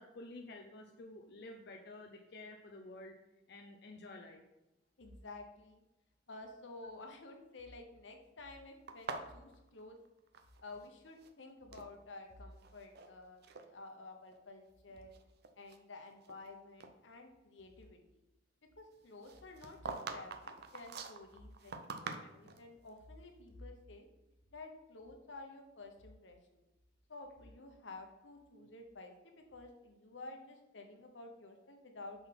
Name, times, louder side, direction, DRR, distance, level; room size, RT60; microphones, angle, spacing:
voice 1, 0.0-3.1 3.5-4.4, left 2 dB, 60° left, 1 dB, 0.6 m, -51 dB
voice 2, 5.0-5.8 6.3-10.0 10.6-15.1 15.6-18.0 18.8-24.1 24.5-26.6 27.1-32.3, left 2 dB, 85° left, 3 dB, 1.0 m, -52 dB
sound 1, 8.9-10.9 11.1-11.9 12.5-13.1 13.4-13.7 14.3-14.4 15.0-16.5 16.8-16.9 19.2-22.7, right 4 dB, 60° right, 0.6 m, -45 dB
6.1 x 3.9 x 5.2 m, 0.96 s
head